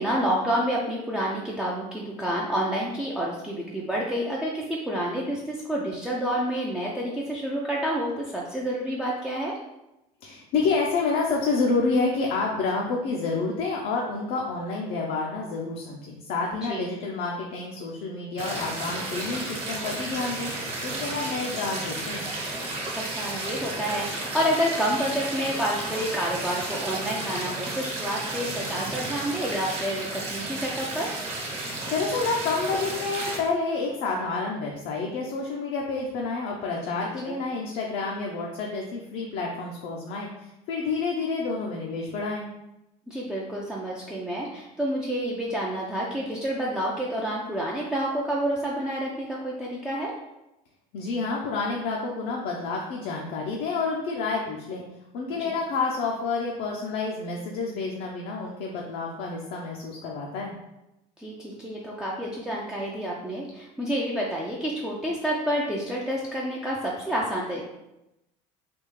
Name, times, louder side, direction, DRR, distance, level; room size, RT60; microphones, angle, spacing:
voice 1, 0.0-9.5 16.6-16.9 22.9-31.1 37.3-37.4 43.1-50.1 55.4-55.6 61.2-67.6, equal, 5° right, -5 dB, 0.4 m, -29 dB
voice 2, 10.2-20.5 20.8-22.3 31.9-40.3 40.7-42.5 50.9-54.8 55.1-60.5, left 4 dB, 65° left, -1 dB, 0.5 m, -29 dB
sound 1, 18.4-33.4, right 2 dB, 40° right, 1.1 m, -33 dB
3.4 x 2.3 x 3.1 m, 0.91 s
cardioid pair, 120°, 17 cm